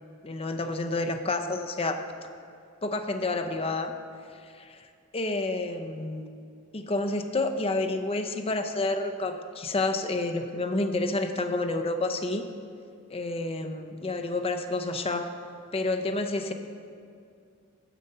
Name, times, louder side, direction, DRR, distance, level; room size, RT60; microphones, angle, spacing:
voice 1, 0.2-2.0 2.8-3.9 4.5-4.9 5.1-6.3 6.7-12.5 13.1-15.3 15.7-16.5, left 2 dB, 25° left, 7 dB, 0.6 m, -29 dB
9.1 x 7.9 x 5.4 m, 2.4 s
head